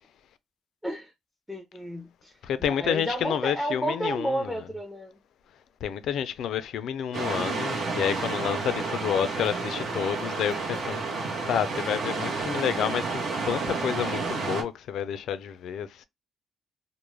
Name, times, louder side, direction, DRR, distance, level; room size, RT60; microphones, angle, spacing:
voice 1, 1.5-2.3 2.7-5.2, right 1 dB, 5° right, 0.5 m, -31 dB
voice 2, 2.4-4.4 5.8-11.0 11.5-16.0, left 9 dB, 75° left, 0.3 m, -29 dB
sound 1, 7.1-14.6, right 3 dB, 60° right, 0.8 m, -30 dB
2.2 x 2.0 x 3.1 m
cardioid pair, 90°, 0 cm